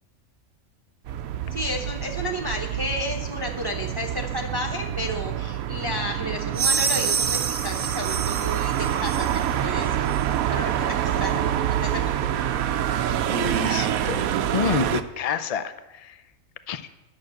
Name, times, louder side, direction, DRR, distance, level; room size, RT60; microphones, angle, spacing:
sound 1, 1.0-15.0, right 10 dB, 80° right, 1.1 m, -27 dB
voice 1, 1.5-10.1 10.5-12.3, equal, 20° right, 2 dB, 0.8 m, -32 dB
sound 2, 6.5-9.5, right 7 dB, 50° right, 0.8 m, -27 dB
voice 2, 13.3-16.2 16.7-16.8, left 6 dB, 60° left, 12 dB, 0.3 m, -29 dB
11.0 x 6.4 x 7.6 m, 1.0 s
omnidirectional pair, 1.5 m